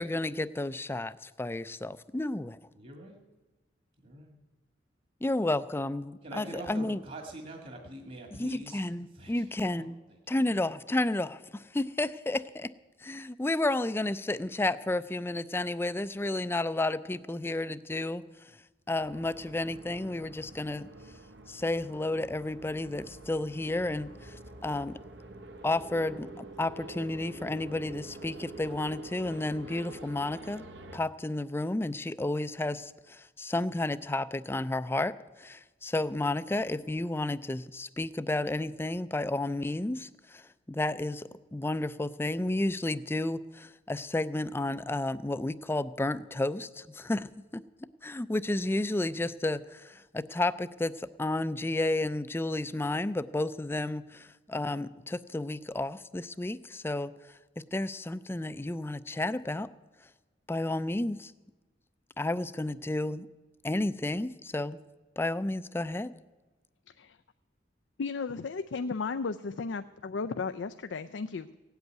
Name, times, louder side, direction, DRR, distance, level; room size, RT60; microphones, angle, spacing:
voice 1, 0.0-2.6 5.2-7.0 8.4-10.0 10.3-12.7 13.0-18.2 18.9-20.9 21.5-24.4 24.6-25.0 25.6-30.7 30.9-40.4 40.7-47.6 48.0-57.1 57.6-59.7 60.5-61.3 62.2-63.3 63.6-64.8 65.2-66.1, left 2 dB, 15° left, 15 dB, 0.4 m, -32 dB
voice 2, 2.7-3.2 4.0-4.4 6.2-8.9 9.1-9.9, right 1 dB, 45° right, 3 dB, 1.8 m, -44 dB
sound 1, 18.9-31.0, right 1 dB, 80° right, 1.3 m, -47 dB
voice 3, 66.9-67.2 68.0-71.5, left 4 dB, 85° left, 9 dB, 0.5 m, -34 dB
17.0 x 8.1 x 9.2 m, 1.2 s
head